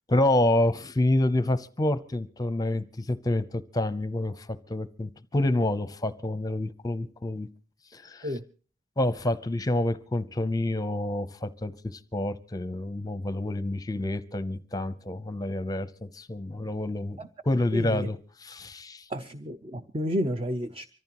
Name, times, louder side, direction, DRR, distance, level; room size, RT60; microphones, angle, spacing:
voice 1, 0.1-7.5 7.9-8.3 9.0-17.2 17.4-19.1, left 1 dB, 20° left, 14 dB, 0.7 m, -28 dB
voice 2, 17.7-18.1 19.1-20.9, equal, 30° right, 10 dB, 0.6 m, -31 dB
24.5 x 14.5 x 3.0 m, 0.40 s
head